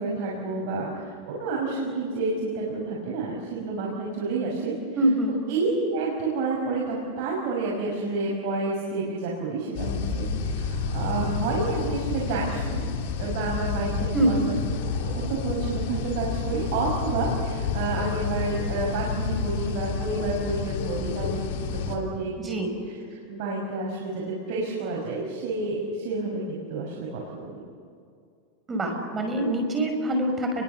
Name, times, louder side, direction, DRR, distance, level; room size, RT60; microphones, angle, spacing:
voice 1, 0.0-4.7 5.5-12.8 13.2-14.4 15.0-22.6 23.1-27.5, right 3 dB, 60° right, -3 dB, 6.3 m, -29 dB
voice 2, 5.0-5.4 14.1-14.5 22.4-22.7 28.7-30.6, right 1 dB, 15° right, 3 dB, 5.8 m, -24 dB
sound 1, 9.7-22.0, left 5 dB, 65° left, 3.9 m, -29 dB
30.0 x 23.0 x 7.1 m, 2.3 s
supercardioid pair, 145°, 0 cm